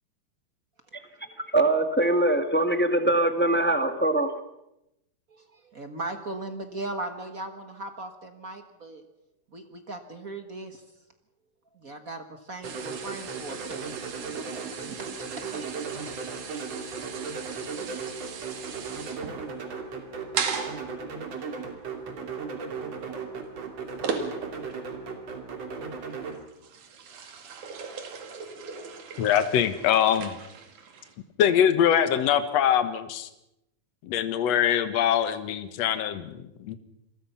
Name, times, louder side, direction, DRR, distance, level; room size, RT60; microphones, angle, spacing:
voice 1, 1.5-4.3, right 1 dB, 10° left, 7 dB, 0.7 m, -22 dB
voice 2, 5.3-9.0 9.5-10.8 11.7-13.8 14.2-15.3 15.5-16.1, right 2 dB, 35° right, 7 dB, 1.5 m, -39 dB
sound 1, 12.6-26.4, right 5 dB, 60° right, 3.9 m, -36 dB
sound 2, 12.6-24.8 25.2-25.6 26.1-31.2, right 6 dB, 80° right, 3.7 m, -38 dB
voice 3, 29.2-30.4 31.4-33.3 34.0-36.8, left 9 dB, 65° left, 10 dB, 2.4 m, -23 dB
27.5 x 21.5 x 5.8 m, 0.88 s
omnidirectional pair, 3.4 m